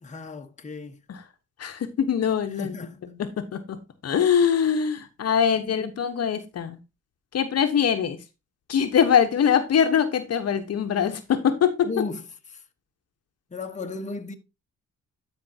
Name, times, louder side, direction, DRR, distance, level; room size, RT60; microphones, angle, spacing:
voice 1, 0.0-1.0 2.5-3.0 11.8-12.2 12.5-12.6 13.5-14.3, left 3 dB, 25° left, 1.2 m, -34 dB
voice 2, 1.6-2.7 3.2-3.8 4.0-6.8 7.3-8.2 8.7-11.9, left 8 dB, 55° left, 1.1 m, -23 dB
12.5 x 5.2 x 2.8 m
cardioid pair, 90°, 30 cm